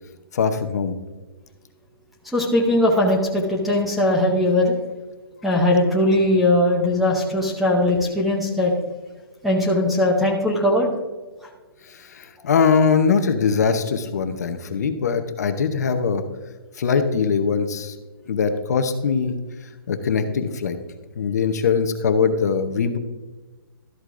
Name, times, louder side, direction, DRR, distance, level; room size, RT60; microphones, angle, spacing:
voice 1, 0.3-1.0 11.9-16.2 16.8-17.9 18.3-19.3 19.9-20.8 21.2-23.0, left 6 dB, 45° left, 8 dB, 0.9 m, -21 dB
voice 2, 2.3-4.8 5.4-8.7 9.4-10.9, left 1 dB, ahead, -3 dB, 0.7 m, -19 dB
13.0 x 7.9 x 2.6 m, 1.2 s
hypercardioid pair, 175°, 12 cm